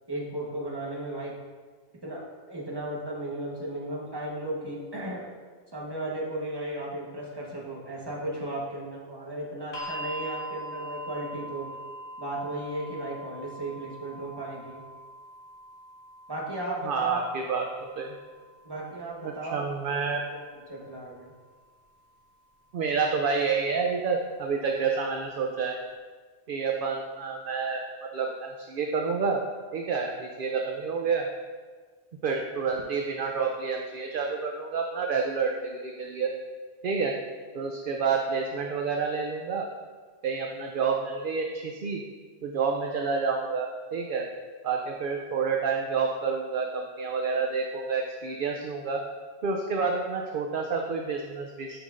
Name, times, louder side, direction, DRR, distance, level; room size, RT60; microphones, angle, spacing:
voice 1, 0.1-1.3 2.0-5.3 5.7-11.8 12.2-14.8 16.3-17.2 18.6-19.6 20.1-21.3, right 1 dB, 20° right, -3 dB, 1.2 m, -35 dB
sound 1, 9.7-21.8 22.9-23.0, equal, 65° left, 2.1 m, -43 dB
voice 2, 16.8-17.7 18.0-18.1 19.2-20.2 22.7-25.8 26.5-27.8 28.1-29.4 29.7-31.3 32.2-36.3 36.8-37.1 37.5-39.7 40.2-42.0 42.4-44.3 44.6-49.0 49.4-51.8, right 5 dB, 60° right, 2 dB, 0.7 m, -29 dB
9.7 x 5.6 x 2.5 m, 1.5 s
omnidirectional pair, 1.1 m